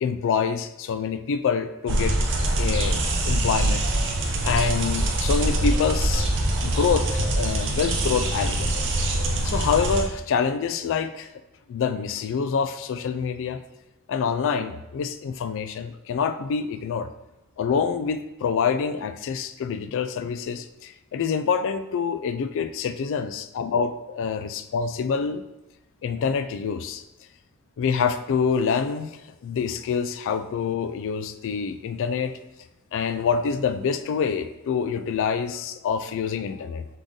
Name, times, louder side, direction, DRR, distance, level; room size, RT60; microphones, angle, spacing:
voice 1, 0.0-2.2 2.6-3.8 4.4-6.3 6.6-8.7 9.4-11.3 11.7-13.6 14.1-17.1 17.6-25.4 26.0-27.0 27.8-29.1 29.4-32.4 32.9-36.9, left 6 dB, 60° left, 10 dB, 0.3 m, -26 dB
sound 1, 1.9-10.0, right 1 dB, 55° right, 0.7 m, -24 dB
3.7 x 3.7 x 3.7 m, 0.96 s
head